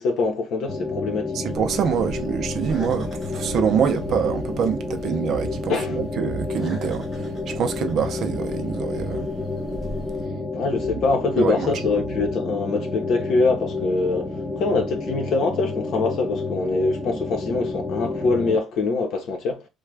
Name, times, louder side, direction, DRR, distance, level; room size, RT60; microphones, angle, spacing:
voice 1, 0.0-1.4 5.7-6.0 10.5-19.7, left 3 dB, 55° left, 1.0 m, -24 dB
sound 1, 0.7-18.6, left 3 dB, 10° left, 0.9 m, -30 dB
voice 2, 1.3-9.3 11.4-11.7, right 7 dB, 50° right, 0.5 m, -25 dB
sound 2, 1.5-10.3, left 1 dB, 5° right, 1.2 m, -42 dB
3.3 x 2.3 x 3.2 m
cardioid pair, 175°, 0 cm